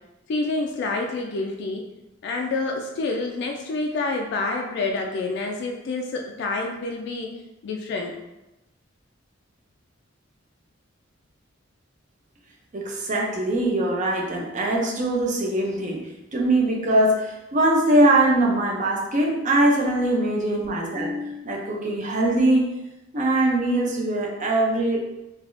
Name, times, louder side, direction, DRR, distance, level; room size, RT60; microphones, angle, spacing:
voice 1, 0.3-1.9 2.2-7.3 7.6-8.1, left 3 dB, 60° left, 1 dB, 0.3 m, -28 dB
voice 2, 12.7-16.0 16.3-22.7 23.1-25.0, right 1 dB, 40° right, -1 dB, 0.5 m, -22 dB
3.3 x 2.3 x 2.5 m, 0.96 s
head